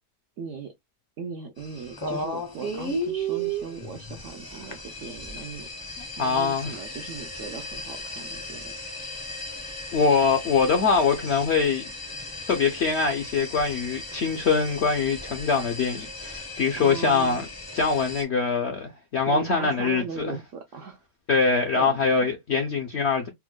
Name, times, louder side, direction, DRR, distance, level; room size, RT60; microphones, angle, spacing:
voice 1, 0.4-0.7 1.2-5.7 6.2-8.7 16.8-17.4 19.2-21.0 21.7-22.3, right 5 dB, 70° right, 0.7 m, -38 dB
sound 1, 1.6-18.2, equal, 25° left, 0.5 m, -36 dB
voice 2, 6.2-6.8 9.9-11.8 12.5-17.5 17.7-20.4 21.3-23.3, left 5 dB, 65° left, 0.6 m, -23 dB
4.4 x 2.1 x 2.2 m
omnidirectional pair, 1.8 m